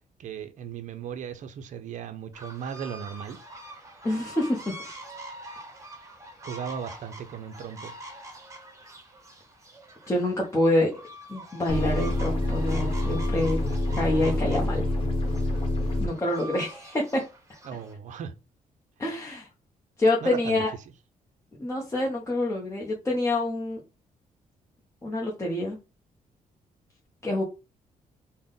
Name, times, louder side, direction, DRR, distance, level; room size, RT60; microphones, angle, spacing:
voice 1, 0.2-3.4 6.4-8.0 17.6-18.3 20.2-20.6, right 7 dB, 60° right, 0.5 m, -37 dB
sound 1, 2.3-17.9, right 1 dB, 20° right, 0.9 m, -44 dB
voice 2, 4.0-4.8 10.1-10.9 11.3-13.6 14.0-14.8 16.0-17.2 19.0-19.5 20.0-20.7 21.6-23.8 25.0-25.8 27.2-27.4, left 1 dB, 20° left, 0.7 m, -26 dB
sound 2, 11.7-16.1, left 1 dB, 40° left, 1.0 m, -27 dB
3.5 x 2.1 x 3.8 m
cardioid pair, 100°, 14 cm